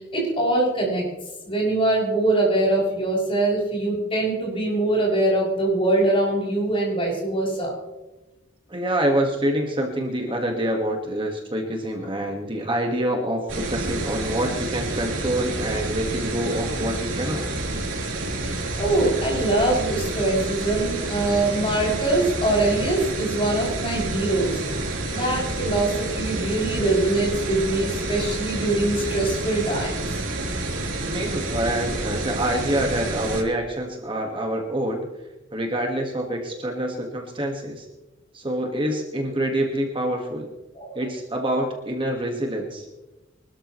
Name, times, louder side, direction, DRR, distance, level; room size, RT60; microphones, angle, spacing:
voice 1, 0.1-1.1 1.4-7.7 18.4-24.6 25.1-30.2 40.7-41.0, right 2 dB, 30° left, -3 dB, 6.5 m, -23 dB
voice 2, 8.7-17.4 31.0-35.1 35.5-37.8 38.3-40.5 40.9-42.8, right 1 dB, 25° right, 1 dB, 1.6 m, -26 dB
sound 1, 13.5-33.4, right 2 dB, 80° right, 3.7 m, -29 dB
24.5 x 13.0 x 3.1 m, 1.1 s
head